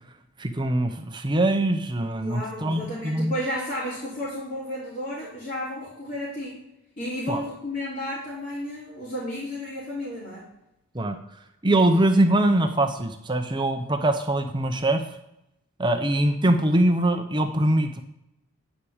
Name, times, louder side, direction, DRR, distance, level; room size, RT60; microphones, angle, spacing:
voice 1, 0.4-3.3 7.3-7.4 10.9-11.2 11.6-15.0 15.8-18.0, right 1 dB, 20° right, 6 dB, 0.7 m, -22 dB
voice 2, 2.2-6.6 7.0-10.5, left 1 dB, 35° left, -10 dB, 3.3 m, -32 dB
10.0 x 4.9 x 7.2 m, 0.83 s
head